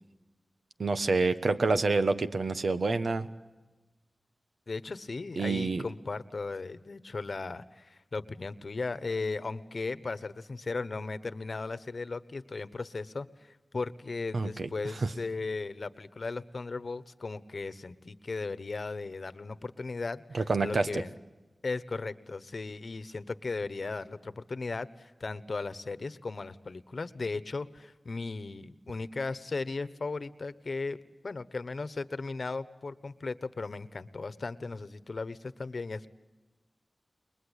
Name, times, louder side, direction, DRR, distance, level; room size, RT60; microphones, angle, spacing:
voice 1, 0.8-3.3 5.4-5.8 14.3-14.7 15.0-15.1 20.3-21.0, right 3 dB, 75° right, 10 dB, 1.4 m, -27 dB
voice 2, 4.7-21.2 21.6-31.0 31.2-36.1, left 3 dB, 60° left, 14 dB, 1.2 m, -36 dB
29.5 x 22.0 x 8.3 m, 1.1 s
wide cardioid pair, 85°, 0 cm